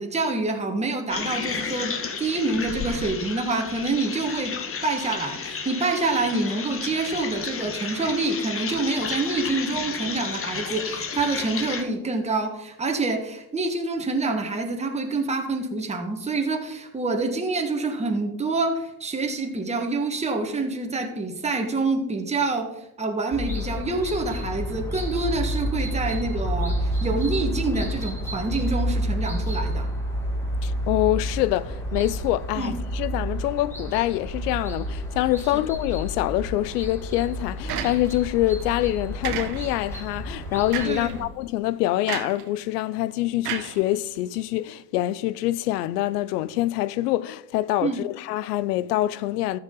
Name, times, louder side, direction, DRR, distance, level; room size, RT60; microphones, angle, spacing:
voice 1, 0.0-22.7 23.0-29.9 32.6-32.7 40.8-41.3 47.8-48.0, right 3 dB, 15° right, 1.5 m, -27 dB
sound 1, 1.1-11.8, left 5 dB, 30° left, 1.2 m, -32 dB
sound 2, 23.3-41.2, equal, 5° left, 2.5 m, -30 dB
voice 2, 30.6-49.6, left 15 dB, 85° left, 0.5 m, -25 dB
sound 3, 37.7-38.3 39.2-39.9 40.7-41.1 42.1-42.5 43.4-44.3, right 9 dB, 85° right, 1.2 m, -32 dB
14.0 x 5.8 x 3.8 m
supercardioid pair, 90°, 46 cm